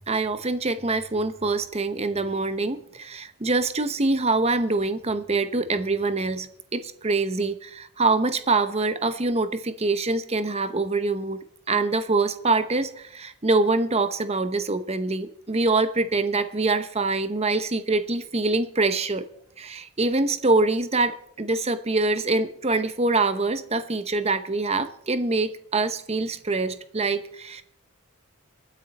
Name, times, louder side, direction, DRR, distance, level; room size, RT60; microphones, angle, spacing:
voice 1, 0.1-11.4 11.7-19.3 19.6-27.6, right 3 dB, 30° right, 11 dB, 0.9 m, -25 dB
24.0 x 9.4 x 4.2 m, 0.70 s
head